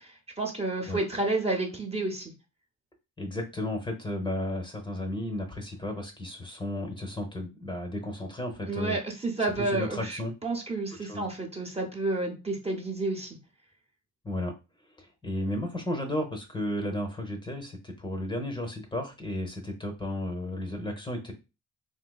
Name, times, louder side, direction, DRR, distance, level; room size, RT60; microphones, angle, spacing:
voice 1, 0.0-2.3 8.7-13.4, right 2 dB, 20° right, 1 dB, 0.8 m, -30 dB
voice 2, 3.2-9.0 9.6-10.3 11.0-11.3 14.2-14.5 15.0-21.3, left 1 dB, 15° left, 4 dB, 0.8 m, -33 dB
3.7 x 2.7 x 2.3 m, 0.28 s
cardioid pair, 90°, 30 cm